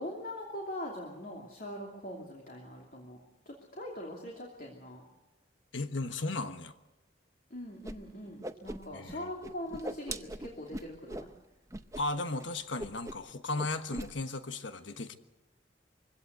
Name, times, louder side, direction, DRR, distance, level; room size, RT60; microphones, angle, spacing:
voice 1, 0.0-3.2 3.5-5.0 7.5-11.3, left 1 dB, 50° left, -1 dB, 2.8 m, -42 dB
voice 2, 5.7-6.7 8.9-9.3 11.9-15.2, left 2 dB, 90° left, 9 dB, 1.3 m, -35 dB
Whoosh swoosh swish, 7.8-8.0 8.2-9.2 9.4-11.3 11.7-12.0 12.3-12.4 12.8-13.3 13.6-14.1, right 1 dB, 15° right, 0.7 m, -40 dB
23.0 x 16.5 x 8.1 m, 1.0 s
head